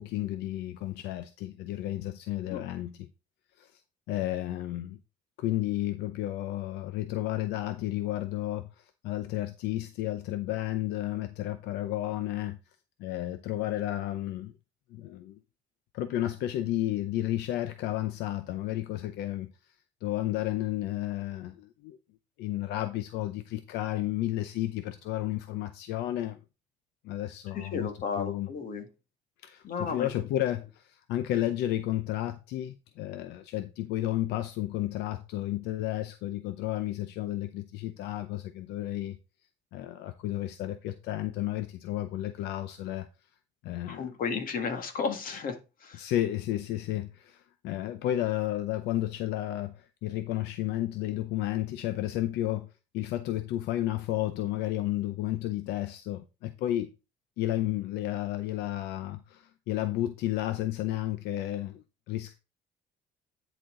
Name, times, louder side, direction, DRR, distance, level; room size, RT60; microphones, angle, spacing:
voice 1, 0.0-3.0 3.6-3.8 4.1-5.0 5.4-12.6 13.0-14.5 14.9-15.4 15.9-19.5 20.0-22.0 22.4-26.4 27.0-27.9 28.2-28.5 29.4-39.2 39.7-43.1 43.6-44.1 46.0-52.7 52.9-56.9 57.4-62.3, left 14 dB, 85° left, 0.6 m, -32 dB
voice 2, 27.5-28.9 29.6-30.1 43.9-46.1, left 5 dB, 55° left, 1.8 m, -33 dB
10.0 x 4.4 x 3.8 m
cardioid pair, 110°, 17 cm